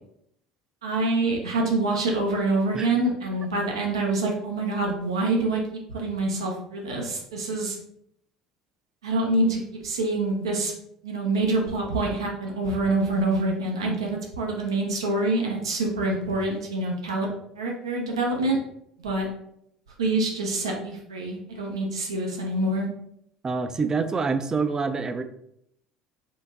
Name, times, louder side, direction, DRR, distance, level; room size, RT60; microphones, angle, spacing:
voice 1, 0.8-5.6 5.9-7.8 9.0-10.7 11.0-17.3 17.6-18.6 19.0-19.3 20.0-22.9, right 2 dB, 75° right, -1 dB, 0.5 m, -26 dB
voice 2, 23.4-25.2, right 4 dB, 25° right, 9 dB, 0.4 m, -26 dB
4.5 x 2.6 x 2.4 m, 0.73 s
figure-of-eight pair, 60°, 3 cm